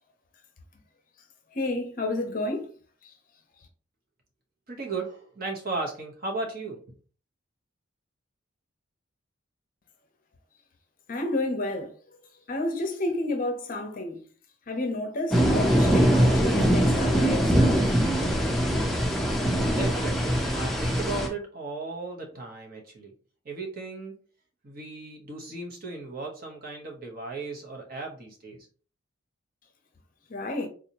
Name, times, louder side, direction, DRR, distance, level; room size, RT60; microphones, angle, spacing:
voice 1, 1.5-2.7 3.0-3.1 11.1-11.9 12.5-14.2 14.7-17.9 30.3-30.7, left 2 dB, 40° left, 0.7 m, -30 dB
voice 2, 4.7-6.9 19.6-23.1 23.4-24.2 24.6-28.7, right 3 dB, 45° right, 0.9 m, -36 dB
sound 1, 15.3-21.3, equal, ahead, 0.5 m, -22 dB
3.8 x 2.8 x 2.8 m
head